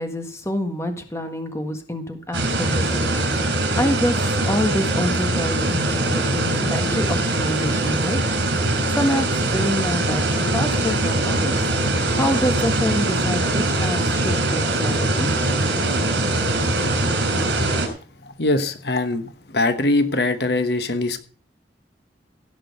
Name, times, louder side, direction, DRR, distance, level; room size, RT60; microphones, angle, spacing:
voice 1, 0.0-3.1 3.7-8.2 8.6-11.7 12.1-15.3, equal, 15° left, 6 dB, 1.6 m, -27 dB
sound 1, 2.3-17.9, right 2 dB, 80° right, 3.9 m, -22 dB
voice 2, 18.2-21.2, left 2 dB, 65° left, 9 dB, 1.1 m, -22 dB
16.5 x 6.2 x 6.4 m, 0.41 s
head